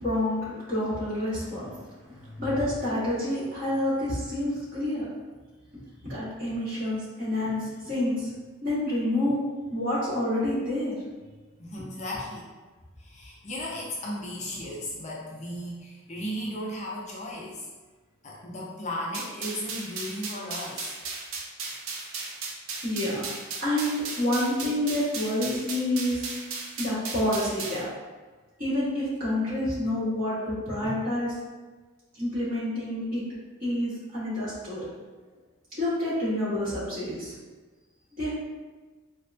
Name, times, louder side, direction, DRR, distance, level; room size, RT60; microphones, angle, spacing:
voice 1, 0.0-1.7 2.4-5.0 6.0-8.3 8.6-9.4 9.7-10.9 22.8-23.3 23.6-26.3 26.8-27.9 28.6-31.4 32.1-33.2 33.6-34.8 35.8-37.3 38.2-38.3, left 1 dB, 40° right, -11 dB, 1.5 m, -28 dB
voice 2, 2.1-2.6 11.6-12.5 13.0-17.7 18.2-20.9 35.3-35.4, left 1 dB, 30° left, -3 dB, 0.4 m, -36 dB
sound 1, 19.1-27.9, right 4 dB, 70° right, 0.4 m, -36 dB
4.1 x 2.2 x 2.5 m, 1.3 s
head